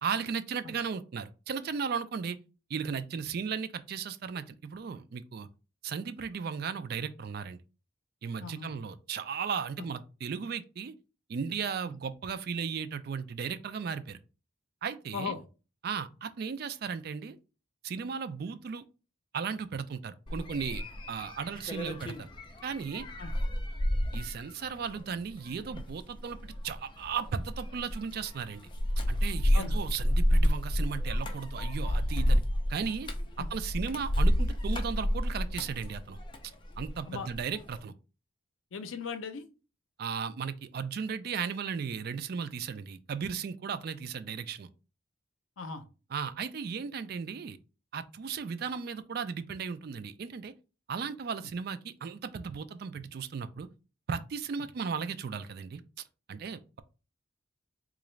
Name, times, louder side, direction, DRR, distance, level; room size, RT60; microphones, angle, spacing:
voice 1, 0.0-2.4 2.7-5.5 5.8-7.6 8.2-10.9 11.3-14.2 14.8-15.3 15.8-17.4 17.8-18.8 19.3-20.8 21.1-22.3 22.6-23.1 24.1-28.6 29.1-32.4 32.7-33.1 33.4-36.2 36.8-37.9 40.0-44.7 46.1-47.6 47.9-50.5 50.9-53.7 54.1-55.8 56.3-56.8, right 6 dB, 50° right, 0.3 m, -36 dB
voice 2, 8.4-8.8 9.8-9.9 11.8-11.9 15.1-15.4 23.2-23.3 29.5-29.8 33.4-33.5 37.1-37.3 38.7-39.4 45.6-45.8, left 5 dB, 80° left, 0.5 m, -38 dB
sound 1, 20.3-37.0 37.3-37.8, equal, 25° left, 0.4 m, -30 dB
3.7 x 2.5 x 3.1 m
head